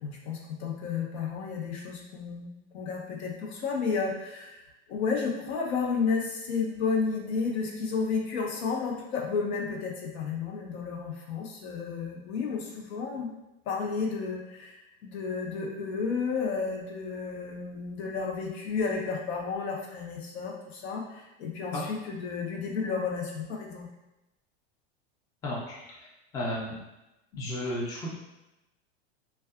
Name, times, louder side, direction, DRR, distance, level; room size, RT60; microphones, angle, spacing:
voice 1, 0.0-4.6 4.9-13.3 13.7-23.9, left 5 dB, 75° left, 0 dB, 0.7 m, -32 dB
voice 2, 25.4-25.8 26.3-26.8 27.3-28.1, left 1 dB, 10° left, -5 dB, 0.3 m, -32 dB
2.6 x 2.2 x 2.3 m, 0.96 s
supercardioid pair, 145°, 32 cm